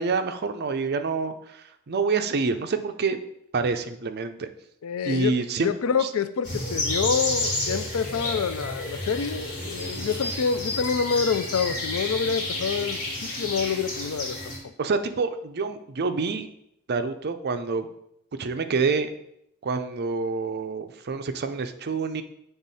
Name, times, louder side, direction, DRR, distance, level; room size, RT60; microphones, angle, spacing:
voice 1, 0.0-3.2 3.5-4.5 5.0-5.7 6.0-6.1 14.8-16.5 16.9-17.9 18.4-19.1 19.6-22.2, right 4 dB, 50° right, 9 dB, 0.5 m, -27 dB
voice 2, 4.8-5.4 5.6-14.5, left 6 dB, 80° left, 12 dB, 0.4 m, -27 dB
sound 1, 6.4-14.6, left 1 dB, 40° left, 2.7 m, -30 dB
7.9 x 3.6 x 4.1 m, 0.76 s
head